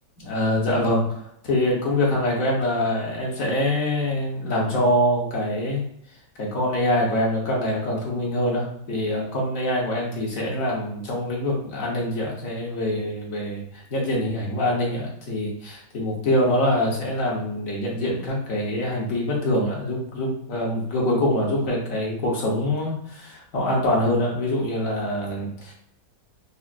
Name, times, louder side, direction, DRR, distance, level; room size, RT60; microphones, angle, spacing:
voice 1, 0.2-5.8 6.4-25.7, left 1 dB, 50° left, -3 dB, 1.4 m, -24 dB
5.8 x 2.1 x 2.4 m, 0.72 s
omnidirectional pair, 2.0 m